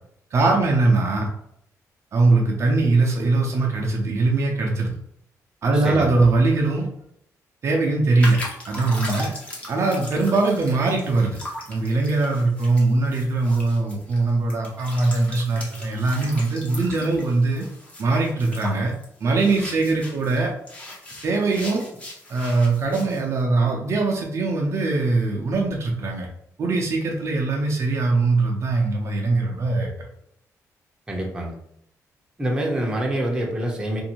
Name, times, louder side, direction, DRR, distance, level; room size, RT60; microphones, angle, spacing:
voice 1, 0.3-1.3 2.1-4.9 5.6-6.9 7.6-9.3 9.7-11.4 11.7-17.7 18.0-18.9 19.2-20.5 21.2-21.8 22.3-26.3 26.6-29.9, right 3 dB, 50° right, 0 dB, 0.5 m, -21 dB
voice 2, 5.7-6.1 31.1-31.6 32.4-34.0, right 1 dB, 15° right, -1 dB, 0.7 m, -26 dB
sound 1, 8.2-20.4 20.7-23.2, left 1 dB, 20° left, 0.8 m, -38 dB
2.6 x 2.5 x 2.8 m, 0.73 s
cardioid pair, 120°, 6 cm